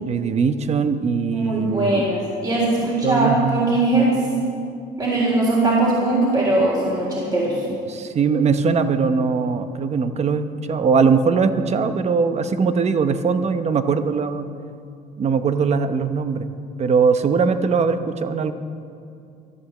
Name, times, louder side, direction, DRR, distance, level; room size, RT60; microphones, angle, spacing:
voice 1, 0.0-2.1 2.8-3.8 7.8-14.5 15.2-16.5 16.8-18.5, right 5 dB, 40° right, 10 dB, 0.9 m, -21 dB
voice 2, 1.3-4.1 5.0-7.6, right 2 dB, 25° right, -4 dB, 3.6 m, -20 dB
14.0 x 11.5 x 7.3 m, 2.5 s
cardioid pair, 110°, 17 cm